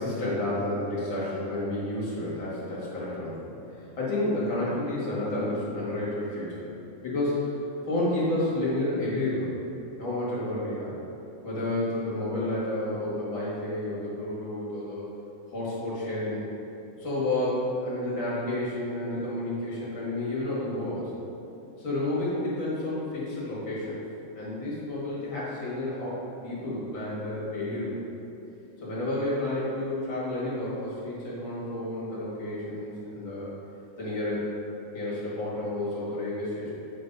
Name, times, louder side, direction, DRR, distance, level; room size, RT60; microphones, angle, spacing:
voice 1, 0.0-3.5 4.0-6.6 7.0-7.5 7.8-9.5 10.0-10.9 11.4-15.0 15.5-16.5 17.0-21.1 21.8-24.0 24.4-26.2 26.4-28.0 28.8-33.5 34.0-34.5 34.9-36.7, left 1 dB, 45° left, -8 dB, 1.8 m, -30 dB
8.1 x 3.3 x 5.3 m, 2.8 s
omnidirectional pair, 3.9 m